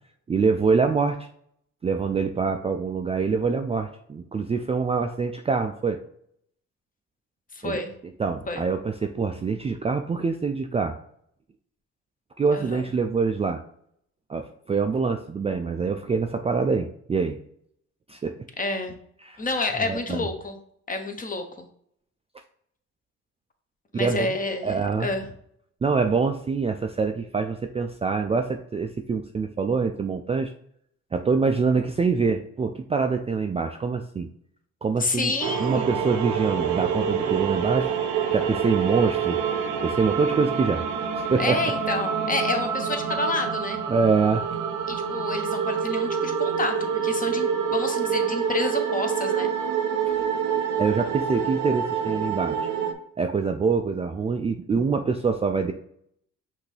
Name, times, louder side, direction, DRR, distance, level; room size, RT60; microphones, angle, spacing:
voice 1, 0.3-1.2 1.8-6.0 7.6-7.8 8.2-11.0 12.4-13.6 14.3-17.4 18.1-18.4 19.2-19.4 19.9-20.3 23.9-24.4 24.6-25.1 25.8-30.5 31.1-34.3 34.8-35.3 35.6-37.9 38.3-40.9 41.2-41.6 43.9-44.5 50.2-50.3 50.8-52.6 53.2-55.7, right 5 dB, 20° right, 5 dB, 0.3 m, -25 dB
voice 2, 7.5-7.9 8.5-8.6 12.5-12.9 18.6-19.0 19.4-20.6 20.9-21.7 23.9-25.3 35.0-35.9 41.4-43.8 44.9-49.5, left 3 dB, 25° left, 5 dB, 0.9 m, -29 dB
sound 1, 35.4-52.9, right 7 dB, 75° right, 0.7 m, -27 dB
5.8 x 2.7 x 3.3 m, 0.67 s
cardioid pair, 90°, 30 cm